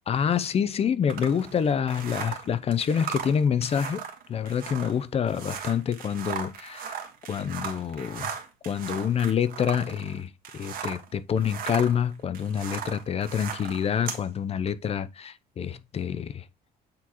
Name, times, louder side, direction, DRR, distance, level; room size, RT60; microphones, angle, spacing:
voice 1, 0.1-4.0 4.3-7.0 7.3-8.3 8.7-16.4, left 8 dB, 35° left, 0.6 m, -27 dB
sound 1, 1.1-11.1 11.4-14.2, right 7 dB, 60° right, 1.5 m, -37 dB
8.6 x 3.9 x 3.0 m
cardioid pair, 110°, 17 cm